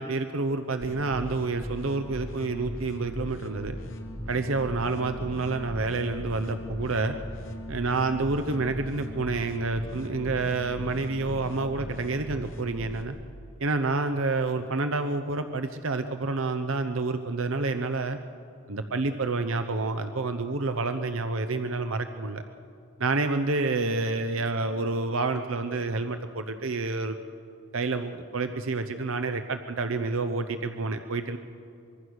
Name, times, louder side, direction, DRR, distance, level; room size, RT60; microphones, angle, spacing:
voice 1, 0.0-3.8 4.3-7.2 7.7-13.1 13.6-18.2 18.7-22.4 23.0-27.2 27.7-31.4, right 3 dB, 70° right, 8 dB, 0.8 m, -28 dB
sound 1, 0.8-13.0, equal, 65° left, 2.6 m, -38 dB
24.5 x 23.0 x 6.5 m, 2.6 s
head